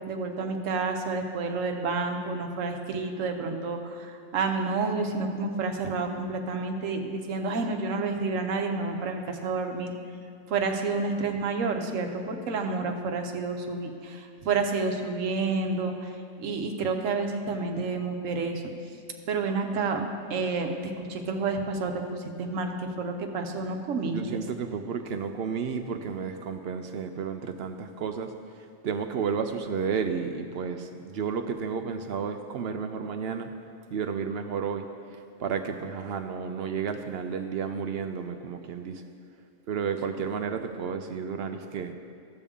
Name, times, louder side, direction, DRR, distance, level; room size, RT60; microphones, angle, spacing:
voice 1, 0.0-9.9 10.5-16.1 16.4-18.6 19.3-20.0 20.3-24.4, right 4 dB, 80° right, 4 dB, 1.2 m, -29 dB
voice 2, 24.1-28.3 28.8-33.5 33.9-34.9 35.1-39.0 39.7-41.9, right 6 dB, 60° right, 7 dB, 0.7 m, -32 dB
14.0 x 6.8 x 3.6 m, 2.3 s
omnidirectional pair, 1.3 m